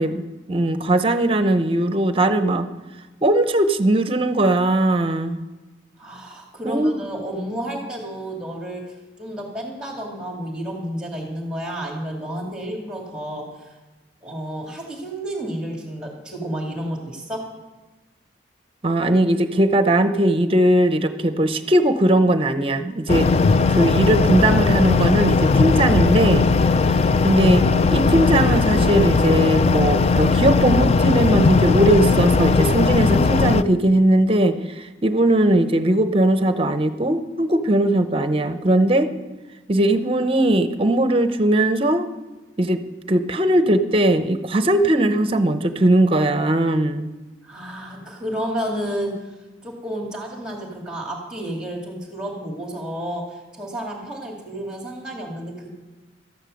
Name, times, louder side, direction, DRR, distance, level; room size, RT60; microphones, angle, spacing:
voice 1, 0.0-2.7 3.2-5.4 6.6-6.9 18.8-23.3 23.7-26.5 27.2-27.6 27.9-39.1 39.7-42.1 42.6-42.8 43.1-47.1, right 1 dB, 30° right, 10 dB, 0.7 m, -19 dB
voice 2, 6.0-8.8 9.2-13.4 14.2-17.4 47.4-49.1 49.6-55.7, right 1 dB, 5° right, 0 dB, 2.2 m, -31 dB
sound 1, 23.1-33.6, left 4 dB, 35° left, 0.3 m, -18 dB
13.5 x 9.8 x 6.4 m, 1.2 s
head